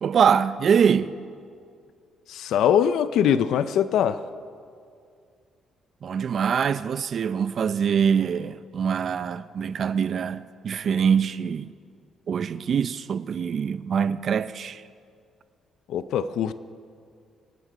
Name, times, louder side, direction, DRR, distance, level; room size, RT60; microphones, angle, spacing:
voice 1, 0.0-1.1 6.0-11.7 12.3-14.8, right 7 dB, 55° right, 0.5 m, -24 dB
voice 2, 2.3-4.2 15.9-16.5, left 9 dB, 80° left, 0.5 m, -22 dB
24.5 x 9.3 x 5.1 m
cardioid pair, 90°, 0 cm